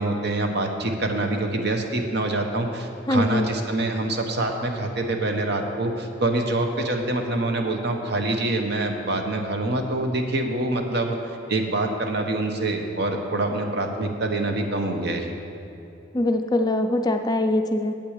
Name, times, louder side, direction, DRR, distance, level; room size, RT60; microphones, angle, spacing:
voice 1, 0.0-15.3, right 2 dB, 60° right, 4 dB, 1.0 m, -25 dB
voice 2, 3.1-3.5 16.1-17.9, left 1 dB, 20° left, 6 dB, 0.4 m, -22 dB
8.3 x 6.1 x 8.2 m, 2.8 s
head